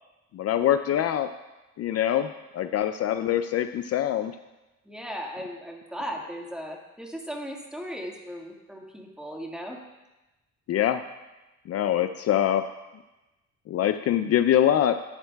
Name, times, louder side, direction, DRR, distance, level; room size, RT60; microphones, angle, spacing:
voice 1, 0.3-1.3 1.8-4.4 10.7-11.0 11.7-12.7 13.7-15.0, left 11 dB, 55° left, 9 dB, 0.4 m, -24 dB
voice 2, 4.8-9.8, equal, 5° right, 0 dB, 1.7 m, -37 dB
12.5 x 10.0 x 2.3 m, 1.0 s
cardioid pair, 90°, 30 cm